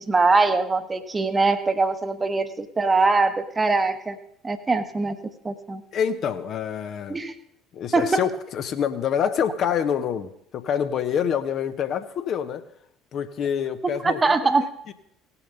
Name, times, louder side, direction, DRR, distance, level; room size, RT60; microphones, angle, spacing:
voice 1, 0.0-4.2 4.4-5.2 5.4-5.8 7.1-7.3 7.9-8.3 14.0-14.7, right 3 dB, 20° right, 10 dB, 1.1 m, -22 dB
voice 2, 5.9-7.2 7.7-12.6 13.1-14.3 14.9-15.0, left 8 dB, 45° left, 9 dB, 0.8 m, -26 dB
17.5 x 7.0 x 5.4 m, 0.72 s
figure-of-eight pair, 60°, 0 cm